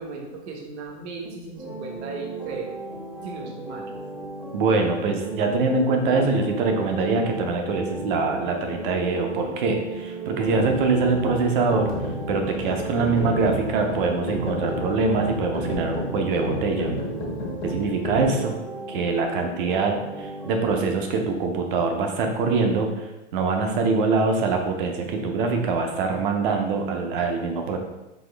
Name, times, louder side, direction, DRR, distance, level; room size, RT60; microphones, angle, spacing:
voice 1, 0.0-2.8 3.2-3.9, right 3 dB, 65° right, 0 dB, 1.1 m, -36 dB
sound 1, 1.6-20.7, right 2 dB, 5° right, 0.5 m, -36 dB
voice 2, 4.5-11.9 12.3-16.9 17.6-18.5 18.9-23.1 23.3-27.8, right 4 dB, 50° right, 4 dB, 0.6 m, -24 dB
sound 2, 10.4-18.3, equal, 55° left, 1.1 m, -32 dB
4.2 x 2.7 x 3.3 m, 1.0 s
supercardioid pair, 165°, 35 cm